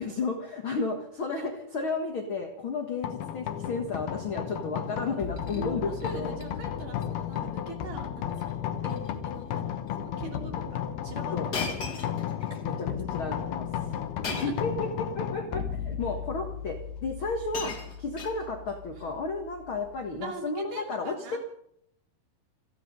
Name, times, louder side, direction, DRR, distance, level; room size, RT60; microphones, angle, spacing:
voice 1, 0.0-6.4 7.0-7.2 8.8-9.0 10.5-10.7 11.3-11.5 12.6-13.7 14.4-17.7 18.0-21.4, left 4 dB, 50° left, 4 dB, 1.5 m, -33 dB
sound 1, 3.0-20.2, left 9 dB, 80° left, 3.1 m, -34 dB
Shatter, 5.2-5.6 6.0-6.5 6.8-7.0 7.3-7.4 8.3-8.5 8.8-9.1 9.9-10.0 11.5-12.6 14.2-14.7 15.7-15.8 16.9-17.0 17.2-18.8 19.7-20.0, left 4 dB, 35° left, 1.8 m, -38 dB
voice 2, 5.5-9.0 9.2-12.4 14.3-14.5 18.9-19.2 20.2-21.4, right 3 dB, 50° right, 2 dB, 4.0 m, -42 dB
28.5 x 9.6 x 5.4 m, 0.72 s
omnidirectional pair, 4.4 m